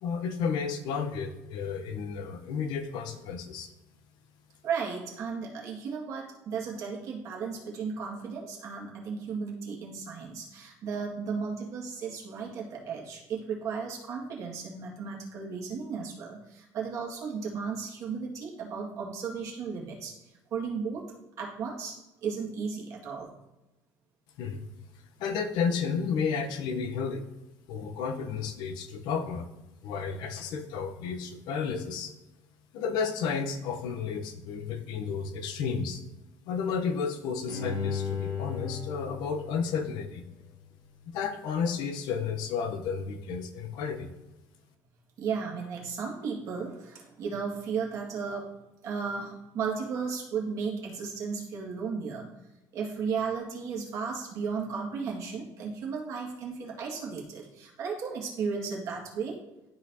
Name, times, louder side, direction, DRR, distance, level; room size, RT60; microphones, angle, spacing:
voice 1, 0.0-3.7 24.4-24.6 25.2-27.3 27.7-29.5 29.8-32.1 32.7-36.0 36.5-40.2 41.1-44.1, left 6 dB, 60° left, 8 dB, 0.8 m, -32 dB
voice 2, 4.6-20.2 20.5-21.1 21.4-23.3 45.2-48.5 48.8-52.3 52.7-59.4, right 5 dB, 45° right, -2 dB, 1.8 m, -35 dB
Bowed string instrument, 37.5-40.6 41.0-41.1, left 6 dB, 45° left, 1.3 m, -36 dB
12.0 x 4.2 x 2.7 m, 0.99 s
cardioid pair, 160°, 8 cm